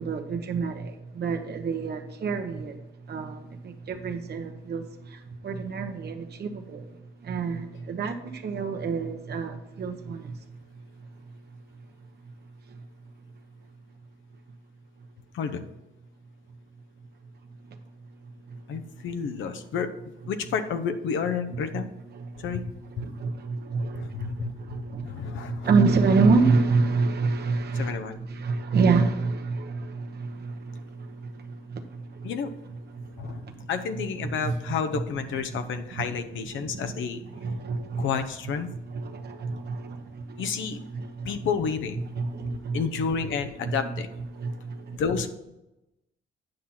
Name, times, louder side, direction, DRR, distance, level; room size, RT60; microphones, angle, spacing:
voice 1, 0.0-2.8 3.1-10.4 18.5-18.6 21.7-21.8 22.1-22.5 23.0-32.3 32.9-33.7 34.2-34.6 35.5-35.6 36.0-36.1 36.5-37.0 37.3-38.1 38.9-40.5 40.9-41.4 42.2-42.8 43.6-43.8 44.3-45.0, right 4 dB, 55° right, 1.1 m, -28 dB
voice 2, 15.3-15.6 18.7-19.9 20.3-21.9 22.4-22.6 23.0-23.1 23.9-25.7 27.7-28.2 32.2-32.5 33.2-37.2 38.0-38.7 40.4-40.8 41.2-42.0 42.7-44.1 44.9-45.3, left 6 dB, 75° left, 0.8 m, -30 dB
9.2 x 5.8 x 4.2 m
cardioid pair, 90°, 20 cm